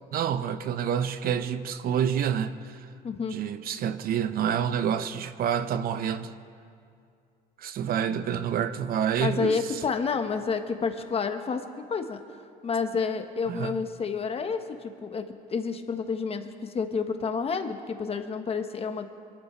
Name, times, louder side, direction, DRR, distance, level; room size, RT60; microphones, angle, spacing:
voice 1, 0.1-2.9 3.3-6.4 7.6-9.8 13.5-13.8, right 8 dB, 60° right, 0.7 m, -28 dB
voice 2, 3.0-3.4 9.2-12.2 12.6-19.1, left 5 dB, 35° left, 1.2 m, -29 dB
23.5 x 12.5 x 4.5 m
cardioid pair, 110°, 17 cm